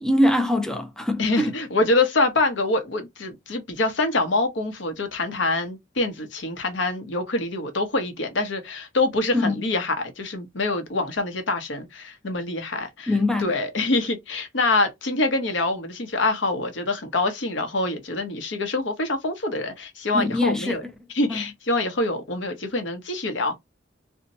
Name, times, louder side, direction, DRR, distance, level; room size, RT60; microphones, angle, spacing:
voice 1, 0.0-1.6 9.3-9.6 13.1-13.5 20.1-20.8 21.3-21.4, left 1 dB, 5° left, 0.4 m, -23 dB
voice 2, 1.2-20.8 21.1-23.5, left 2 dB, 70° left, 0.8 m, -25 dB
2.6 x 2.1 x 3.9 m
head